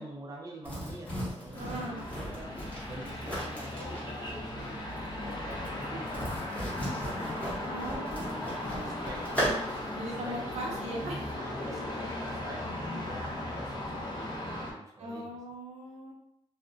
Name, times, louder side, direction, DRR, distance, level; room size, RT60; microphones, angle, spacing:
voice 1, 0.0-2.6 2.9-8.0 8.3-9.9 10.2-10.8 11.3-15.4, right 2 dB, 30° right, -2 dB, 0.4 m, -47 dB
sound 1, 0.6-10.0, equal, 10° left, 0.9 m, -37 dB
sound 2, 1.5-14.7, left 1 dB, 40° left, 0.5 m, -37 dB
voice 2, 1.6-2.0 7.7-9.2 10.0-11.3 12.7-13.0 15.0-16.1, right 1 dB, 70° right, -3 dB, 0.8 m, -40 dB
2.4 x 2.1 x 2.4 m, 0.78 s
wide cardioid pair, 145°, 12 cm